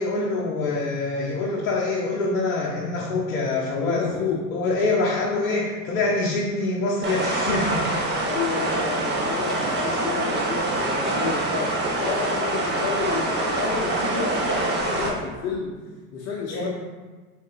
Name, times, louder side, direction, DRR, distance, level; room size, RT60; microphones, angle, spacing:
voice 1, 0.0-4.1 4.5-7.9 16.5-16.7, left 3 dB, 70° left, -4 dB, 0.8 m, -25 dB
voice 2, 3.8-4.5 8.2-15.8 16.1-16.7, left 5 dB, 40° left, -3 dB, 0.8 m, -30 dB
sound 1, 7.0-15.1, right 2 dB, 25° right, 0.9 m, -25 dB
3.7 x 3.7 x 3.8 m, 1.3 s
hypercardioid pair, 80°, 44 cm